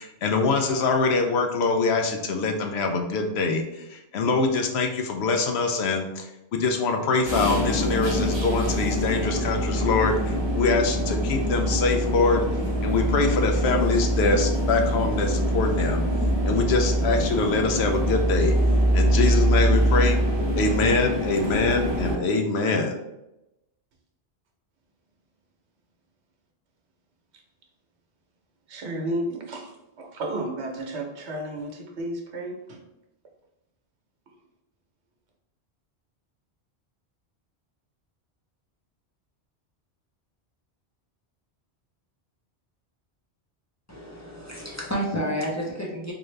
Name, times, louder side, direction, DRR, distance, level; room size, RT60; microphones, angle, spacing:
voice 1, 0.0-12.5 12.8-16.1 16.4-18.5 18.9-20.2 20.6-22.9, left 3 dB, 75° left, 3 dB, 0.8 m, -24 dB
sound 1, 7.2-22.2, equal, 30° right, 0.6 m, -24 dB
voice 2, 28.7-29.7 30.0-32.8, right 1 dB, 80° right, 1 dB, 1.1 m, -32 dB
voice 3, 43.9-46.1, equal, 20° left, -4 dB, 0.7 m, -30 dB
3.8 x 2.6 x 3.2 m, 0.90 s
omnidirectional pair, 1.1 m